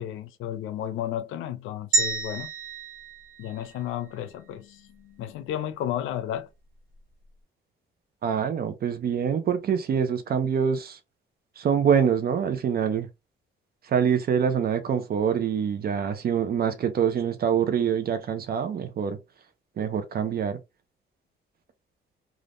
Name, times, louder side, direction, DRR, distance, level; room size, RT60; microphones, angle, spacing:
voice 1, 0.0-2.5 3.4-6.5, left 11 dB, 85° left, 0.5 m, -33 dB
sound 1, 1.9-4.2, right 4 dB, 80° right, 1.5 m, -29 dB
voice 2, 8.2-11.0 11.6-13.1 13.8-19.2 19.8-20.6, right 7 dB, 50° right, 0.6 m, -25 dB
3.4 x 2.4 x 2.5 m
cardioid pair, 90°, 20 cm